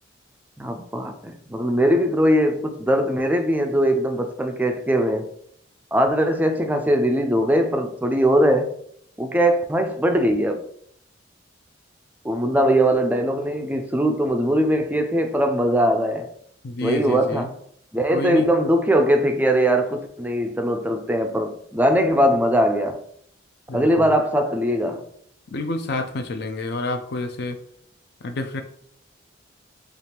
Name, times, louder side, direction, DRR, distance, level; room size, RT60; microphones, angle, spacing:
voice 1, 0.6-5.3 5.9-8.7 9.2-10.7 12.2-16.3 16.8-17.5 17.9-23.0 23.7-25.1, equal, 10° right, 0.4 m, -21 dB
voice 2, 16.6-17.5 18.1-18.5 23.7-24.1 25.5-27.6 28.2-28.6, left 2 dB, 55° left, 0.4 m, -29 dB
3.4 x 2.4 x 4.3 m
head